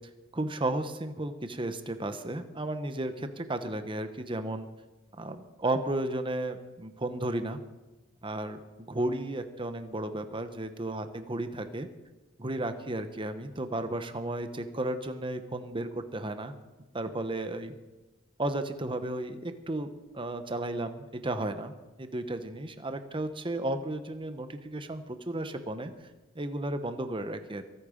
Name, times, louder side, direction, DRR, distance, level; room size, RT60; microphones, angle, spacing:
voice 1, 0.3-4.7 5.2-7.6 8.2-11.9 12.4-16.5 16.9-17.7 18.4-19.9 20.1-21.7 22.0-25.9 26.3-27.6, right 1 dB, 25° right, 9 dB, 1.0 m, -33 dB
22.5 x 8.8 x 5.1 m, 1.1 s
head